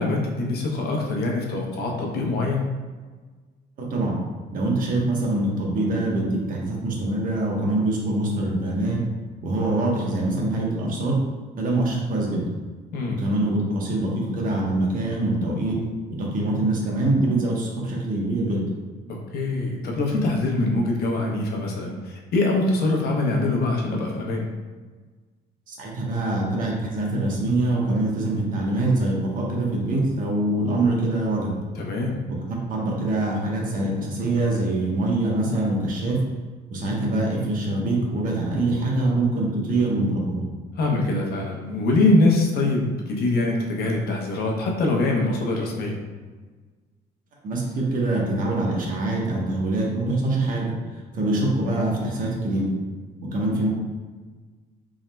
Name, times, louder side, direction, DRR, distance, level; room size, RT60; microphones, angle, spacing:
voice 1, 0.0-2.7 12.9-13.2 19.1-24.5 31.7-32.2 40.8-46.0, left 2 dB, 65° left, 0 dB, 0.8 m, -23 dB
voice 2, 4.5-9.0 9.4-11.2 11.6-12.4 13.2-15.8 16.1-18.7 25.7-31.5 32.5-36.2 36.7-40.4 47.4-50.7 51.1-52.7 53.3-53.7, right 2 dB, 55° right, -2 dB, 1.1 m, -24 dB
4.1 x 3.6 x 2.2 m, 1.4 s
cardioid pair, 110°, 17 cm